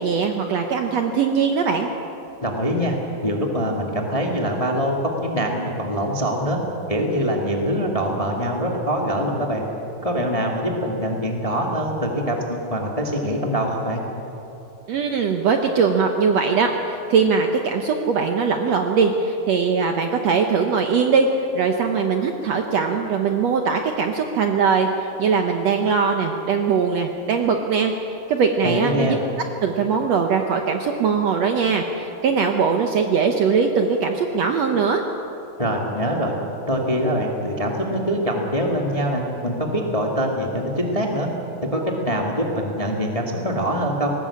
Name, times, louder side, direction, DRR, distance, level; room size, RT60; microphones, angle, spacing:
voice 1, 0.0-1.9 14.9-21.3 21.5-24.9 25.2-27.9 28.3-29.2 29.6-35.0, right 5 dB, 65° right, 4 dB, 1.8 m, -21 dB
voice 2, 2.4-3.0 3.2-6.6 6.9-9.6 10.0-14.0 28.6-29.3 35.6-36.3 36.7-41.3 41.6-44.1, equal, 15° left, 0 dB, 1.4 m, -24 dB
19.5 x 18.5 x 8.5 m, 3.0 s
omnidirectional pair, 3.9 m